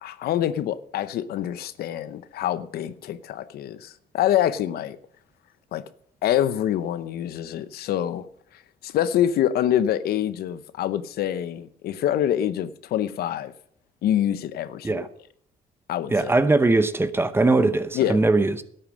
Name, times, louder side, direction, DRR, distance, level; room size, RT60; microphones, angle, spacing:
voice 1, 0.0-5.0 5.7-5.8 6.2-8.3 8.8-13.5 14.0-15.0 15.9-16.3 17.9-18.2, left 11 dB, 65° left, 0.8 m, -25 dB
voice 2, 16.1-18.6, right 2 dB, 15° right, 0.8 m, -20 dB
12.5 x 8.7 x 6.3 m
cardioid pair, 110°, 17 cm